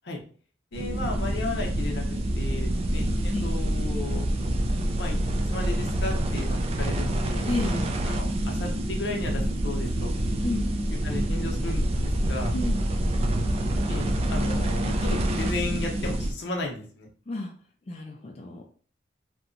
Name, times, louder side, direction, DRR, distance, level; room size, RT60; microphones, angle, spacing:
voice 1, 0.7-4.3 5.0-5.2 5.5-7.8 8.1-10.1 11.0-12.5 13.9-17.1, left 2 dB, 75° left, 1 dB, 0.7 m, -35 dB
sound 1, 0.7-16.3, right 1 dB, 35° right, 0.3 m, -27 dB
voice 2, 7.5-7.9 10.4-10.7 12.5-12.8 17.3-17.5 17.9-18.6, left 2 dB, 35° left, 1 dB, 0.4 m, -31 dB
2.8 x 2.2 x 2.5 m, 0.43 s
head